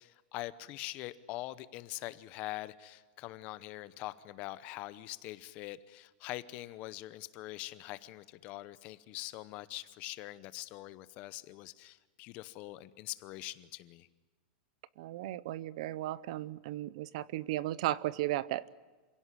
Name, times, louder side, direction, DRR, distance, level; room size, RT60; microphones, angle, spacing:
voice 1, 0.0-14.1, left 17 dB, 30° left, 15 dB, 0.8 m, -43 dB
voice 2, 15.0-18.7, right 15 dB, 50° right, 19 dB, 0.7 m, -35 dB
28.0 x 17.0 x 9.9 m, 1.3 s
supercardioid pair, 175°, 5 cm